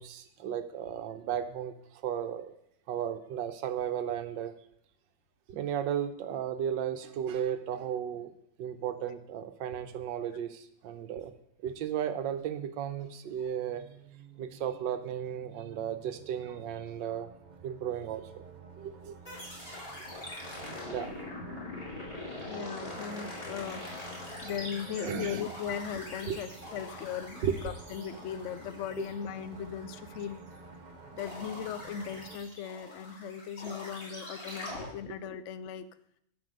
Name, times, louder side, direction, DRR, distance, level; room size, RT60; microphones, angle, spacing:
voice 1, 0.0-2.5 2.9-4.5 5.5-8.3 8.6-11.3 11.6-13.8 14.4-17.3 17.6-18.4 18.8-19.2 20.7-21.2 21.5-21.6 22.6-22.8 23.4-23.6 24.5-24.6 25.0-25.4 25.7-25.8 26.3-26.4 27.4-27.7 29.0-29.1 34.8-35.2, right 9 dB, 85° right, 9 dB, 1.5 m, -35 dB
sound 1, 13.4-32.4, right 4 dB, 65° right, 0.4 m, -50 dB
sound 2, 19.3-30.7 31.2-34.9, left 2 dB, 20° left, 3.0 m, -43 dB
voice 2, 22.4-24.0 24.4-30.4 31.1-35.9, left 8 dB, 80° left, 13 dB, 0.6 m, -38 dB
11.0 x 5.9 x 6.6 m, 0.73 s
omnidirectional pair, 1.9 m